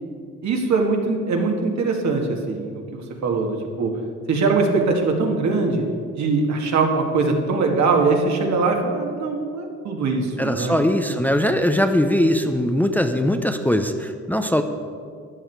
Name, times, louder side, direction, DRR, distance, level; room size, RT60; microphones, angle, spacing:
voice 1, 0.4-3.9 4.3-5.8 6.1-10.8, right 3 dB, 65° right, 1 dB, 2.0 m, -22 dB
voice 2, 10.4-14.6, left 1 dB, 5° left, 6 dB, 0.6 m, -20 dB
13.5 x 9.8 x 4.7 m, 2.2 s
cardioid pair, 90°, 30 cm